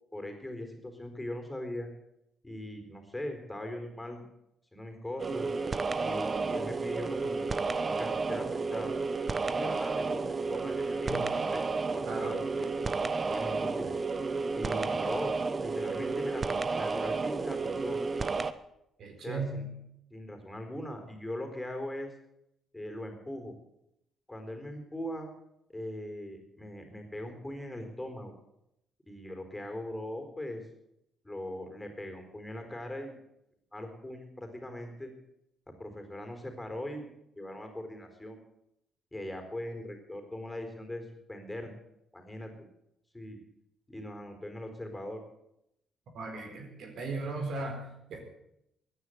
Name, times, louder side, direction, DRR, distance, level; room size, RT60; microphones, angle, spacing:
voice 1, 0.1-1.9 2.4-4.2 4.7-5.5 6.0-7.5 7.9-9.0 9.3-11.6 11.9-12.7 13.3-13.9 14.5-18.0 19.2-19.6 20.1-22.1 22.7-23.5 24.3-25.3 25.7-28.3 29.1-30.6 31.2-33.2 33.7-35.1 35.8-37.1 37.4-38.4 39.1-41.7 42.1-42.5 43.1-43.4 43.9-45.2, left 1 dB, 15° left, 5 dB, 4.2 m, -40 dB
sound 1, 5.2-18.5, right 4 dB, 35° right, 0.9 m, -31 dB
voice 2, 19.0-19.7 46.1-48.2, right 3 dB, 70° right, 4 dB, 4.1 m, -37 dB
14.5 x 10.0 x 8.1 m, 0.80 s
supercardioid pair, 70°, 0 cm